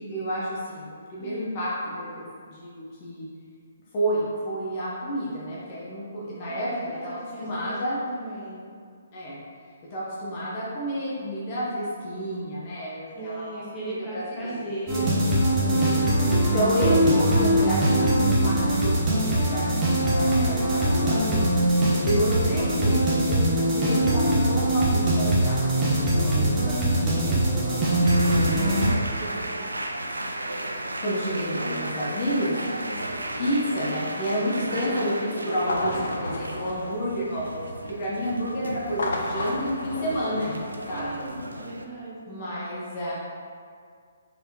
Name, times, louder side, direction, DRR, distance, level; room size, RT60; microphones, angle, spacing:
voice 1, 0.0-3.3 3.9-8.0 9.1-9.4 9.9-13.6 14.1-14.6 15.4-19.8 20.1-21.5 22.0-26.7 31.0-32.6 33.4-41.1 42.3-43.1, equal, 40° left, -7 dB, 0.8 m, -30 dB
voice 2, 1.2-1.6 6.4-8.7 13.1-15.4 26.1-29.5 32.5-33.1 34.7-35.6 40.9-42.4, right 1 dB, 5° left, -10 dB, 1.2 m, -38 dB
sound 1, 14.9-28.9, right 1 dB, 25° right, 1.0 m, -22 dB
sound 2, 28.0-41.9, right 1 dB, 90° right, 0.4 m, -35 dB
sound 3, 35.5-37.8 38.8-41.3, left 2 dB, 65° left, 0.5 m, -33 dB
4.6 x 3.5 x 2.8 m, 2.1 s
figure-of-eight pair, 135°, 0 cm